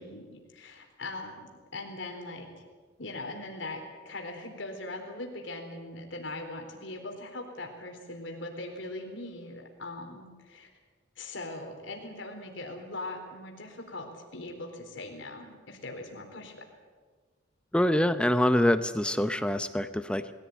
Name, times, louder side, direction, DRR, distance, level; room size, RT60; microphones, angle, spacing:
voice 1, 0.0-2.5 3.0-10.7 11.2-16.5, left 2 dB, 80° left, 3 dB, 4.1 m, -40 dB
voice 2, 17.7-20.3, left 1 dB, 5° left, 10 dB, 0.7 m, -25 dB
22.0 x 16.5 x 9.5 m, 1.5 s
head